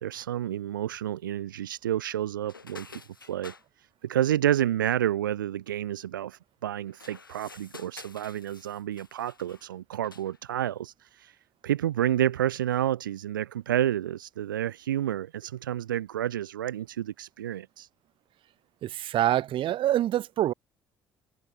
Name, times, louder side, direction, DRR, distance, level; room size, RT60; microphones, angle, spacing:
voice 1, 0.0-2.9 3.2-3.5 4.0-11.4 11.6-17.9, right 11 dB, 75° right, 0.6 m, -29 dB
sound 1, 2.4-3.6 6.9-9.7 10.0-10.4, left 4 dB, 85° left, 5.4 m, -49 dB
voice 2, 18.8-20.5, right 13 dB, 50° right, 1.1 m, -25 dB
figure-of-eight pair, 50°, 11 cm